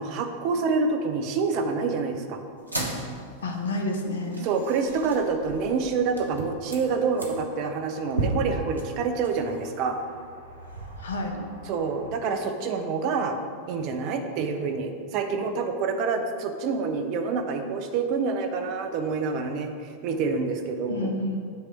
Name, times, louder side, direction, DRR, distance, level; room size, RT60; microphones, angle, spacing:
voice 1, 0.0-2.4 4.4-10.0 11.7-13.4 13.7-19.7 20.0-21.1, right 4 dB, 40° right, 5 dB, 0.7 m, -27 dB
sound 1, 2.6-12.2, right 1 dB, 85° right, 1.0 m, -36 dB
voice 2, 3.4-4.5 11.0-11.4 20.9-21.4, left 1 dB, 65° left, 3 dB, 0.9 m, -29 dB
8.4 x 3.4 x 5.9 m, 2.1 s
figure-of-eight pair, 90°, 0 cm